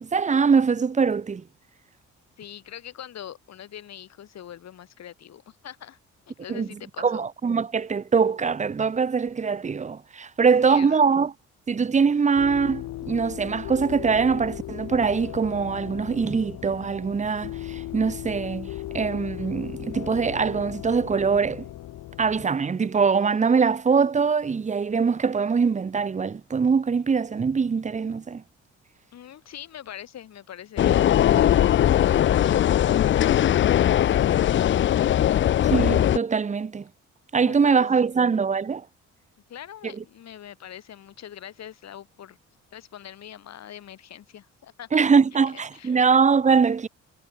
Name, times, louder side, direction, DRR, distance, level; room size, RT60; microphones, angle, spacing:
voice 1, 0.0-1.4 6.5-6.7 7.0-11.3 11.7-21.7 22.2-28.4 35.6-36.9 37.3-38.9 40.0-40.1 44.9-46.9, right 5 dB, 25° right, 0.8 m, -23 dB
voice 2, 2.4-6.0 6.3-7.3 10.6-11.1 29.1-34.7 37.4-37.9 39.5-42.4 42.7-44.9 45.5-46.1, left 10 dB, 60° left, 1.8 m, -43 dB
sound 1, 12.4-22.5, left 14 dB, 75° left, 1.5 m, -37 dB
sound 2, 30.8-36.2, left 11 dB, 40° left, 0.4 m, -20 dB
cardioid pair, 90°, 30 cm